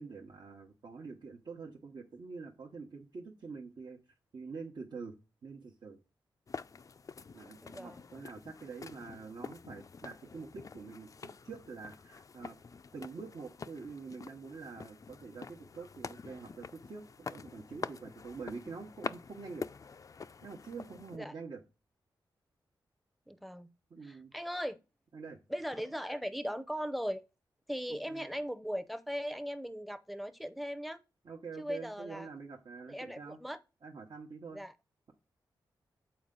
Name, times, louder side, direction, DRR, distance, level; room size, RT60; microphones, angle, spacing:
voice 1, 0.0-4.0 4.3-5.1 5.4-6.0 7.3-12.6 12.9-19.7 20.4-21.6 23.9-24.3 25.1-25.4 27.9-28.3 31.2-33.4 33.8-34.6, right 4 dB, 65° right, 1.0 m, -46 dB
sound 1, 6.5-21.2, left 5 dB, 40° left, 0.3 m, -46 dB
voice 2, 7.6-8.0 21.1-21.3 23.3-23.7 24.0-24.8 25.5-27.2 27.7-31.0 31.6-32.3 32.9-33.6 34.5-34.7, equal, ahead, 0.6 m, -38 dB
7.0 x 4.4 x 3.8 m
cardioid pair, 65°, 8 cm